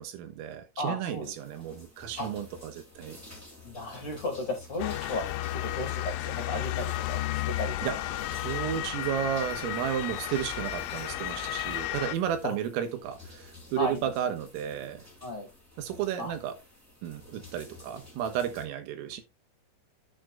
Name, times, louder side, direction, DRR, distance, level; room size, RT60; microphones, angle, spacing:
voice 1, 0.0-3.2 7.8-8.0 8.3-15.1 15.8-16.6 17.0-19.2, right 10 dB, 90° right, 4.0 m, -33 dB
voice 2, 0.8-1.3 2.2-2.3 3.6-5.2 5.5-7.7 12.4-12.6 13.8-14.1 15.2-15.5 16.2-16.3, left 2 dB, 35° left, 2.8 m, -34 dB
sound 1, 1.1-18.6, left 2 dB, 5° right, 2.0 m, -51 dB
Motor vehicle (road) / Siren, 4.8-12.2, left 14 dB, 80° left, 3.0 m, -33 dB
10.5 x 9.0 x 2.5 m
omnidirectional pair, 5.8 m